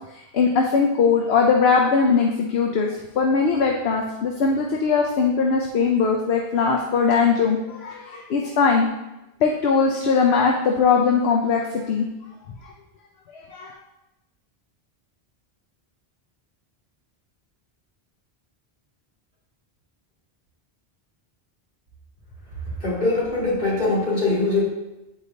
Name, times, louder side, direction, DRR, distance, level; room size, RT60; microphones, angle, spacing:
voice 1, 0.3-8.9 9.4-12.1 13.3-13.7, left 5 dB, 80° left, 1 dB, 0.9 m, -20 dB
voice 2, 22.8-24.6, left 2 dB, 60° left, -8 dB, 2.8 m, -22 dB
9.3 x 4.8 x 2.8 m, 0.96 s
omnidirectional pair, 1.0 m